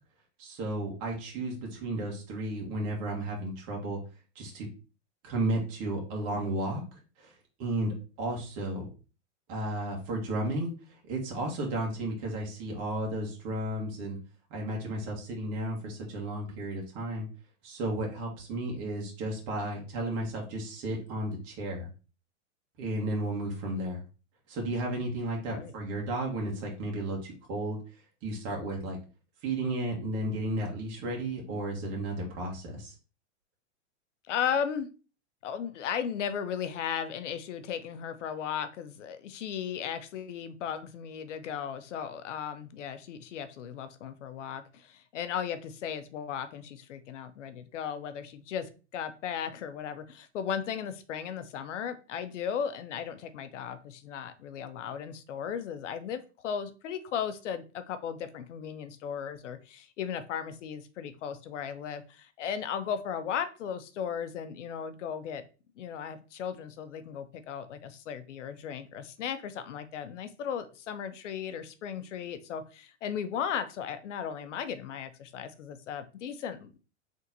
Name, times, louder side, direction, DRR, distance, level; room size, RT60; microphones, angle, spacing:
voice 1, 0.4-4.0 4.4-4.7 5.2-6.8 7.2-7.3 7.6-8.9 9.5-10.7 11.1-14.2 14.5-17.3 17.6-21.9 22.8-24.0 24.5-27.8 28.2-29.0 29.4-32.9, right 1 dB, 45° right, -1 dB, 1.7 m, -33 dB
voice 2, 34.3-34.9 35.4-65.4 65.8-76.8, left 8 dB, 80° left, 10 dB, 0.7 m, -36 dB
3.9 x 3.4 x 2.7 m, 0.34 s
hypercardioid pair, 125°, 36 cm